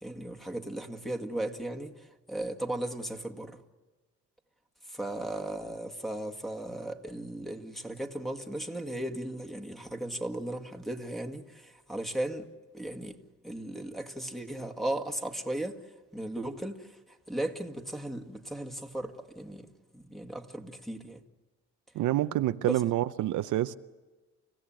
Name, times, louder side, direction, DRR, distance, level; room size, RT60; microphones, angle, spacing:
voice 1, 0.0-3.6 4.9-12.5 12.7-13.2 13.4-15.8 16.1-19.7 19.9-21.2 22.6-22.8, right 1 dB, ahead, 2.1 m, -36 dB
voice 2, 21.9-23.7, right 14 dB, 80° right, 0.7 m, -27 dB
29.5 x 16.5 x 9.0 m
cardioid pair, 90°, 30 cm